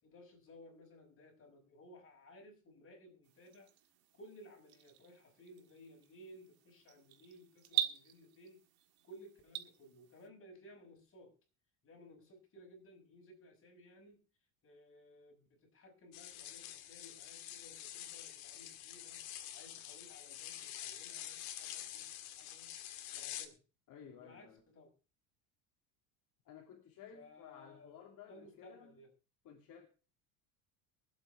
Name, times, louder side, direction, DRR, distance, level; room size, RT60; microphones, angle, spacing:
voice 1, 0.0-3.7 4.1-8.6 9.0-11.3 11.8-14.2 14.6-22.8 23.1-23.6 24.1-24.9 27.1-28.0 28.3-29.1, equal, 30° left, 1 dB, 6.0 m, -58 dB
sound 1, 3.2-10.3, right 13 dB, 60° right, 1.7 m, -44 dB
sound 2, 16.1-23.5, left 12 dB, 80° left, 1.9 m, -47 dB
voice 2, 23.9-24.6 26.4-28.9 29.4-29.9, left 8 dB, 50° left, 0 dB, 2.9 m, -55 dB
23.5 x 8.2 x 3.5 m, 0.35 s
supercardioid pair, 110°, 42 cm